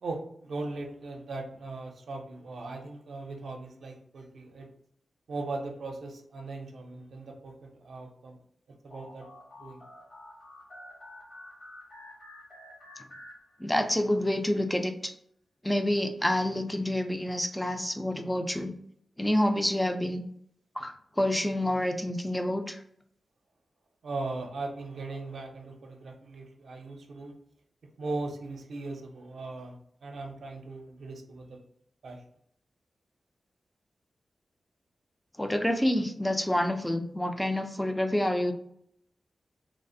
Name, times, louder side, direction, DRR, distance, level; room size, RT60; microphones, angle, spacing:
voice 1, 0.0-4.7 5.3-8.4 8.8-9.3 9.6-9.9 24.0-27.3 28.0-31.6 32.0-32.2, right 3 dB, 75° right, 2 dB, 0.5 m, -39 dB
sound 1, 8.9-14.0, left 1 dB, 40° left, 0.9 m, -49 dB
voice 2, 13.6-15.1 15.6-18.7 19.2-20.2 20.8-22.8 35.4-38.5, left 1 dB, 10° left, 6 dB, 0.3 m, -28 dB
3.1 x 2.0 x 2.6 m, 0.67 s
wide cardioid pair, 140°, 0 cm